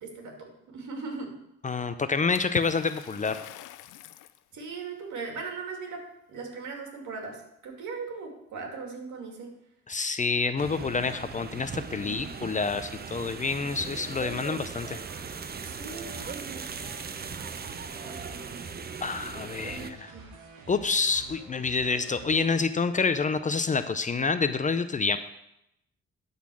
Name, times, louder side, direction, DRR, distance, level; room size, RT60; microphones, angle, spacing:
voice 1, 0.0-1.4 4.5-6.0 6.3-9.5 12.0-12.3 15.6-16.3 18.0-18.6 20.1-20.3, right 4 dB, 75° right, 1 dB, 2.4 m, -39 dB
voice 2, 1.6-3.4 9.9-15.0 19.0-20.1 20.7-25.2, left 4 dB, 25° left, 11 dB, 0.5 m, -28 dB
Water / Splash splatter, 2.4-4.4, left 13 dB, 90° left, 0.5 m, -42 dB
sound 1, 10.6-19.9, right 5 dB, 30° right, 0.7 m, -39 dB
sound 2, 10.6-22.6, right 3 dB, 90° right, 1.7 m, -49 dB
12.0 x 4.1 x 6.2 m, 0.82 s
cardioid pair, 90°, 30 cm